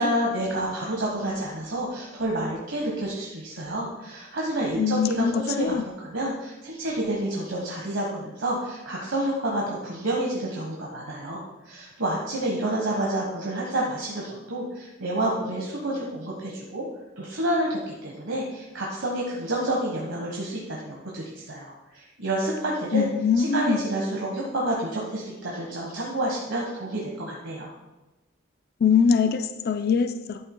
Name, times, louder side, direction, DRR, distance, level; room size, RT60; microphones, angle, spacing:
voice 1, 0.0-16.8 17.2-23.1 23.4-27.7, right 1 dB, 85° right, -3 dB, 1.4 m, -29 dB
voice 2, 4.8-5.8 22.9-23.8 28.8-30.4, left 6 dB, 50° left, 9 dB, 0.4 m, -23 dB
11.0 x 7.9 x 2.2 m, 1.0 s
head